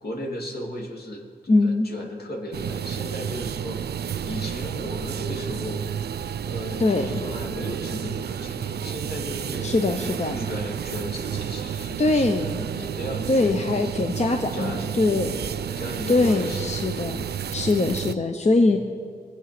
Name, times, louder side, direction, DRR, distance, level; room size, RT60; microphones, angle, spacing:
voice 1, 0.0-1.2 1.6-3.8 4.2-5.8 6.4-9.8 10.4-13.8 14.5-15.0 15.8-16.8 17.7-17.9 18.7-18.8, equal, 75° left, 0 dB, 2.6 m, -35 dB
voice 2, 1.5-1.9 6.8-7.2 9.6-10.5 12.0-12.6 13.3-15.5 16.1-18.8, left 2 dB, 45° left, 5 dB, 0.9 m, -22 dB
sound 1, 2.5-18.1, right 8 dB, 80° right, 0.4 m, -31 dB
21.5 x 8.1 x 6.0 m, 2.1 s
cardioid pair, 60°, 16 cm